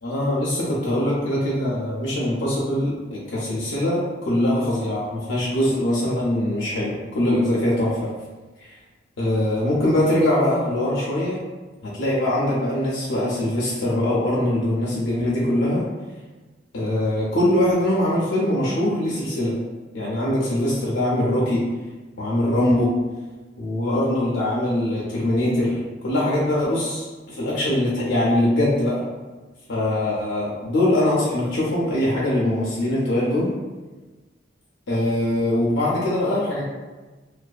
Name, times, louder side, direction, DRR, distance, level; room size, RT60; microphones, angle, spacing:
voice 1, 0.0-8.1 8.6-8.7 9.2-11.4 11.8-15.8 16.7-19.6 19.9-21.7 22.2-22.9 23.6-29.0 29.7-33.5 34.9-36.6, left 1 dB, 80° left, -6 dB, 0.5 m, -22 dB
2.6 x 2.2 x 2.3 m, 1.2 s
head